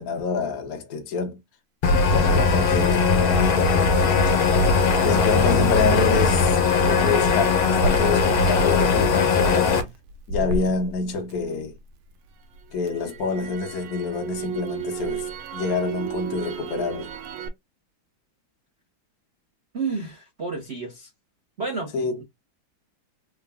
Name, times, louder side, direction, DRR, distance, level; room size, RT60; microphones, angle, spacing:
voice 1, 0.0-1.4 2.1-4.3 5.0-9.9 10.3-11.7 12.7-17.1 21.9-22.2, left 4 dB, 55° left, 1.2 m, -27 dB
sound 1, 1.8-9.8, left 4 dB, 75° left, 1.6 m, -19 dB
Crackle, 7.8-11.9 12.3-17.5, right 3 dB, 85° right, 1.5 m, -33 dB
voice 2, 10.4-10.7 19.7-21.1 21.6-22.2, right 4 dB, 45° right, 0.9 m, -31 dB
3.8 x 2.1 x 3.5 m
omnidirectional pair, 2.3 m